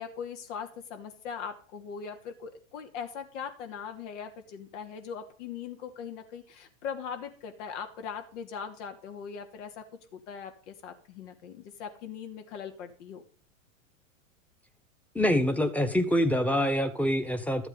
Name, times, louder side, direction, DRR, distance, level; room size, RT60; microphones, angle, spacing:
voice 1, 0.0-9.8 10.1-13.2, left 7 dB, 65° left, 6 dB, 2.8 m, -40 dB
voice 2, 15.1-17.7, equal, 5° left, 8 dB, 1.4 m, -25 dB
13.0 x 8.0 x 5.3 m, 0.41 s
hypercardioid pair, 110°, 39 cm